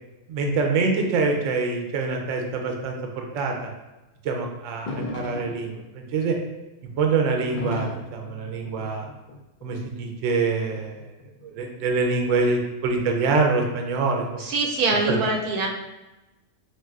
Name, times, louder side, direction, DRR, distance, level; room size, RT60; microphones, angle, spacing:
voice 1, 0.3-3.7 4.2-6.4 7.0-9.0 9.6-11.1 11.4-14.2 15.1-15.2, right 4 dB, 65° right, 2 dB, 0.9 m, -25 dB
sound 1, 4.9-5.8 7.3-9.7 10.7-11.7, left 2 dB, 85° left, 0.4 m, -35 dB
voice 2, 14.4-15.7, right 3 dB, 85° right, 0 dB, 1.1 m, -23 dB
5.5 x 2.6 x 2.4 m, 1.0 s
omnidirectional pair, 1.5 m